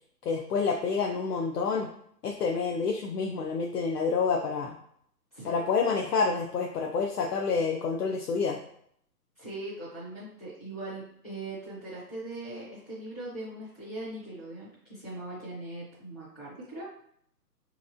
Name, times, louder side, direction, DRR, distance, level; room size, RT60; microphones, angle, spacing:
voice 1, 0.2-1.9 2.2-4.8 5.4-8.6, left 5 dB, 70° left, 1 dB, 0.6 m, -28 dB
voice 2, 9.4-16.9, right 2 dB, 25° left, -9 dB, 0.6 m, -40 dB
3.5 x 2.9 x 2.5 m, 0.67 s
hypercardioid pair, 160°, 49 cm